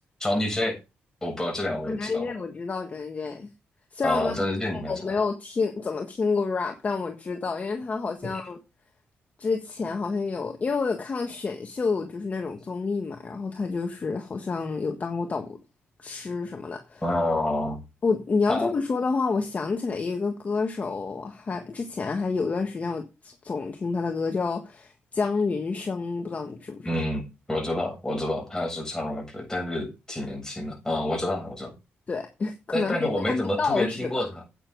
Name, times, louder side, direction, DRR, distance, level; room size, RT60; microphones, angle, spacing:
voice 1, 0.2-0.8 1.2-2.3 4.0-5.1 8.2-8.4 17.0-17.8 18.5-18.7 26.8-31.7 32.7-34.4, left 1 dB, 10° left, 0 dB, 7.5 m, -28 dB
voice 2, 1.9-3.5 3.9-4.4 4.7-8.6 9.4-15.6 16.0-17.0 18.0-26.9 32.1-34.1, left 4 dB, 35° left, 4 dB, 1.5 m, -29 dB
9.9 x 8.9 x 4.0 m, 0.27 s
cardioid pair, 95°, 4 cm